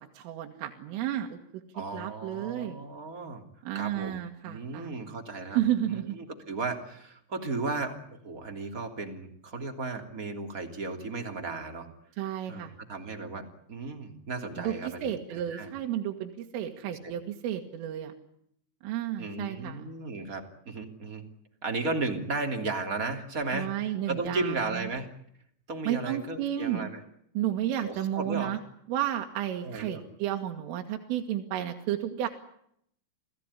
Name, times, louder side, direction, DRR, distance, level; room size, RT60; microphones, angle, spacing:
voice 1, 0.2-1.4 1.9-2.8 3.6-5.0 5.6-6.2 12.2-12.7 14.6-18.1 18.8-19.9 23.5-24.8 25.9-26.9 27.4-28.6 28.9-32.3, right 11 dB, 85° right, 2 dB, 4.4 m, -32 dB
voice 2, 1.7-3.4 3.7-11.9 12.5-15.7 16.9-17.1 19.2-21.2 21.6-25.1 25.7-27.0 27.8-28.5 29.6-30.0, right 3 dB, 20° right, 4 dB, 2.6 m, -35 dB
29.0 x 18.0 x 9.8 m, 0.71 s
omnidirectional pair, 5.6 m